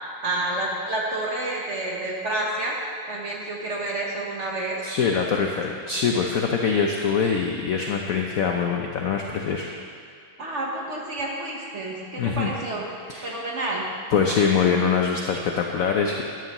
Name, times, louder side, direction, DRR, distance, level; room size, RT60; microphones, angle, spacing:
voice 1, 0.2-2.8 3.1-4.8 10.4-12.9 13.2-13.9, right 2 dB, 45° right, -2 dB, 1.2 m, -29 dB
voice 2, 4.8-9.7 12.2-12.6 13.1-13.4 14.1-16.2, left 6 dB, 70° left, 1 dB, 0.8 m, -23 dB
12.5 x 10.5 x 3.0 m, 2.2 s
omnidirectional pair, 2.2 m